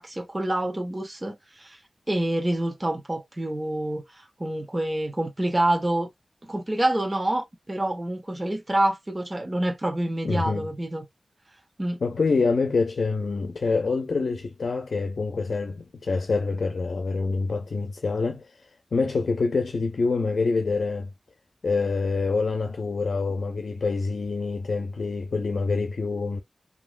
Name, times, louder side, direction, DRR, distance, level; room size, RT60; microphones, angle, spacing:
voice 1, 0.0-1.8 2.1-6.1 6.4-11.0 11.8-12.0, right 1 dB, 25° right, 1.0 m, -27 dB
voice 2, 10.2-10.7 12.0-21.1 21.6-26.4, left 4 dB, 75° left, 0.5 m, -26 dB
3.0 x 2.7 x 2.4 m
wide cardioid pair, 60°, 0 cm